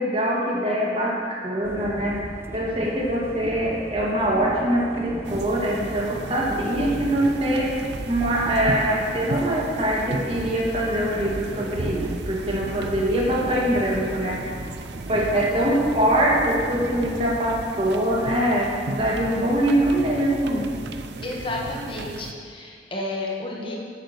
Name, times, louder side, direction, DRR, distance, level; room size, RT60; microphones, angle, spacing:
voice 1, 0.0-2.2 2.5-7.7 8.1-14.4 15.1-20.7, right 1 dB, 35° right, -4 dB, 1.9 m, -23 dB
sound 1, 1.6-17.2, right 1 dB, 15° right, 0.4 m, -38 dB
sound 2, 5.2-22.3, right 2 dB, 75° right, 0.6 m, -35 dB
voice 2, 21.2-23.8, left 2 dB, 30° left, -2 dB, 1.5 m, -31 dB
8.5 x 6.9 x 6.5 m, 2.1 s
head